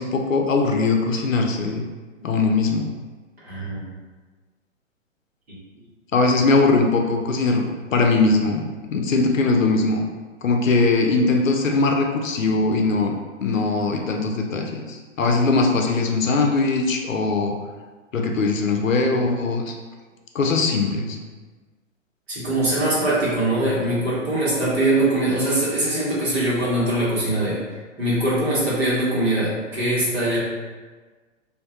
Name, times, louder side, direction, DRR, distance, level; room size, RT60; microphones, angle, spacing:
voice 1, 0.0-1.9 2.2-2.9 6.1-7.6 7.9-10.1 10.4-17.6 18.1-19.7 20.3-21.2, left 3 dB, 90° left, 2 dB, 0.5 m, -21 dB
voice 2, 3.4-3.9 5.5-5.6 20.9-21.0 22.3-27.6 28.0-30.4, right 1 dB, 55° right, -7 dB, 1.2 m, -22 dB
2.5 x 2.2 x 2.5 m, 1.4 s
figure-of-eight pair, 125°, 38 cm